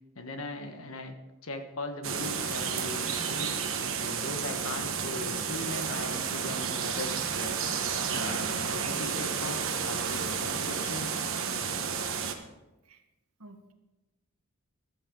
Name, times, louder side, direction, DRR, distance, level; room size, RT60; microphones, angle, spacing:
voice 1, 0.1-1.1 1.4-3.0 3.3-3.5 4.0-7.6 8.1-11.1, left 2 dB, 65° left, 6 dB, 1.5 m, -39 dB
sound 1, 2.0-12.3, right 6 dB, 60° right, 1.3 m, -31 dB
voice 2, 13.4-13.7, right 3 dB, 80° right, 5 dB, 1.6 m, -46 dB
14.0 x 12.5 x 3.9 m, 1.0 s
head